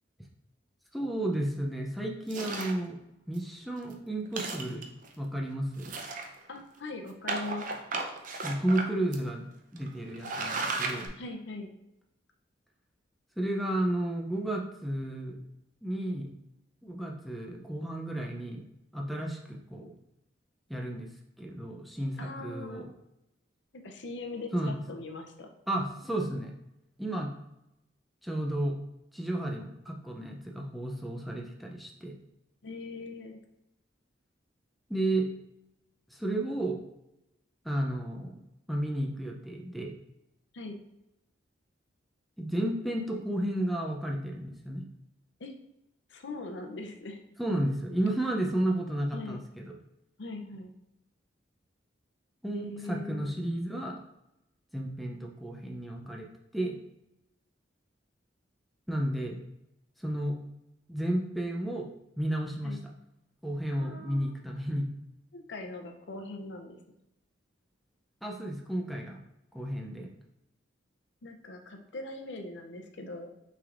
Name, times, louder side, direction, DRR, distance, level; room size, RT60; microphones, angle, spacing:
voice 1, 0.9-3.0 3.3-4.9 5.2-5.9 8.4-9.5 9.7-11.1 13.4-15.4 15.8-16.3 16.8-18.6 18.9-19.9 20.7-21.1 21.4-22.9 24.5-24.8 25.7-26.5 27.0-27.3 28.2-28.8 29.1-32.1 34.9-35.3 36.1-36.8 37.6-39.9 42.4-44.9 47.4-49.7 52.4-54.0 54.7-56.3 56.5-56.8 58.9-59.4 60.0-60.4 60.9-61.9 62.2-62.8 63.4-64.9 68.2-69.2 69.5-70.1, right 1 dB, ahead, 0 dB, 0.5 m, -32 dB
sound 1, 2.3-2.8 3.4-3.5 3.8-3.9 4.3-5.1 5.8-6.6 7.3-8.9 9.1-9.2 9.8-9.9 10.1-11.1, right 3 dB, 45° right, 0.5 m, -34 dB
voice 2, 6.5-7.8 11.2-11.7 22.2-22.9 23.7-25.5 32.6-33.4 40.5-40.8 45.4-45.5 46.1-47.2 49.1-49.4 50.2-50.7 52.5-53.3 62.6-62.9 63.8-64.4 65.3-66.8 71.2-73.3, left 2 dB, 65° left, 4 dB, 0.6 m, -41 dB
6.0 x 3.4 x 2.5 m, 0.86 s
head